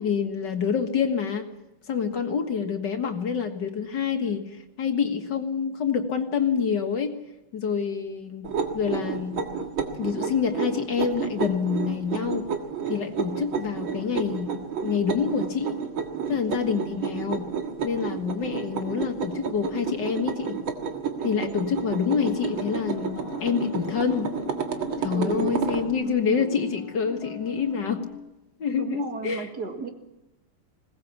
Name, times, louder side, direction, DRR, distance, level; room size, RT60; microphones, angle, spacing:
voice 1, 0.0-1.5 1.9-7.1 7.5-8.5 8.7-9.4 10.0-12.5 12.9-15.8 16.3-17.5 17.8-20.6 21.2-24.3 25.0-28.1 28.6-29.5, left 6 dB, 60° left, 5 dB, 2.2 m, -27 dB
sound 1, 8.4-25.9, right 7 dB, 80° right, 2.6 m, -31 dB
voice 2, 21.2-21.8 25.1-25.5 26.0-26.7 28.7-29.9, right 5 dB, 55° right, 4 dB, 2.5 m, -35 dB
sound 2, 22.2-28.2, left 6 dB, 90° left, 1.9 m, -40 dB
21.0 x 18.5 x 7.2 m, 0.98 s
omnidirectional pair, 2.2 m